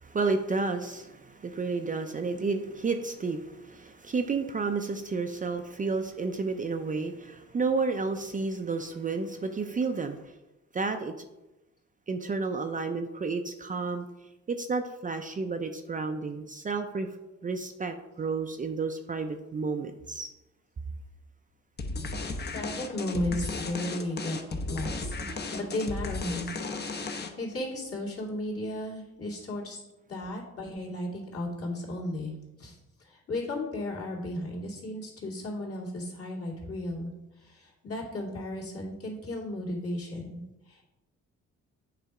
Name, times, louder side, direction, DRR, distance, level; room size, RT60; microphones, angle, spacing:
voice 1, 0.0-10.3 10.7-11.3 12.1-14.0 14.5-17.1 17.4-20.3, right 4 dB, 25° right, 6 dB, 0.5 m, -31 dB
sound 1, 21.8-27.5, left 3 dB, 35° left, 0.8 m, -35 dB
voice 2, 22.5-24.4 24.7-25.1 25.5-26.5 26.9-29.8 30.1-32.3 32.6-37.1 37.4-40.8, left 1 dB, 50° left, -4 dB, 2.5 m, -35 dB
8.0 x 3.4 x 4.8 m, 1.0 s
cardioid pair, 90°, 30 cm